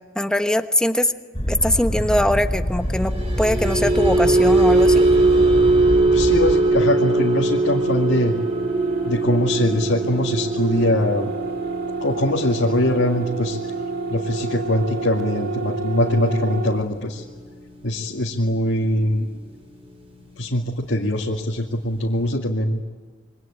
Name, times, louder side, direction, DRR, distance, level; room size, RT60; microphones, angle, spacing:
voice 1, 0.1-1.1 1.5-5.1, left 1 dB, 5° left, 7 dB, 1.2 m, -21 dB
Boat Water vehicle, 1.3-6.5, equal, 30° left, 6.7 m, -26 dB
sound 1, 3.0-19.4 19.7-20.0 20.4-20.6, right 2 dB, 30° right, 5.4 m, -22 dB
voice 2, 6.1-8.4 9.0-11.3 12.0-13.6 14.1-17.2 17.8-19.3 20.4-22.8, left 1 dB, 65° left, -2 dB, 2.2 m, -22 dB
sound 2, 7.8-16.9, right 4 dB, 50° right, 2.0 m, -29 dB
27.0 x 24.0 x 9.0 m, 1.4 s
head